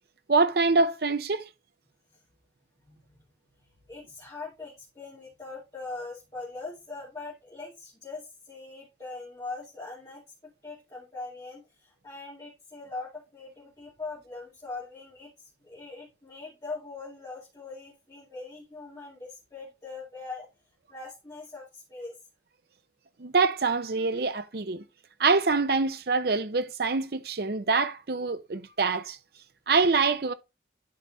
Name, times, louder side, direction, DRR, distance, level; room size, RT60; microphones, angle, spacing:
voice 1, 0.3-1.4 23.2-24.8 25.2-29.2 29.7-30.3, right 4 dB, 55° right, 0.6 m, -25 dB
voice 2, 3.9-20.5 20.9-22.1, left 3 dB, 20° left, 2.2 m, -41 dB
11.5 x 4.1 x 3.1 m
head